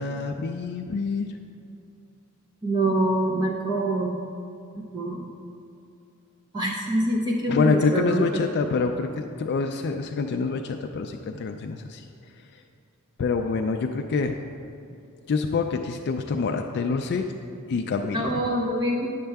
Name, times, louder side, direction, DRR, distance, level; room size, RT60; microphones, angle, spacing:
voice 1, 0.0-1.3 7.5-12.0 13.2-14.4 15.3-17.3 17.6-18.3, left 4 dB, 50° left, 4 dB, 0.3 m, -26 dB
voice 2, 2.6-4.2 4.8-5.3 6.5-8.5 18.1-19.1, right 1 dB, 20° right, -1 dB, 0.5 m, -25 dB
10.0 x 6.6 x 3.4 m, 2.6 s
head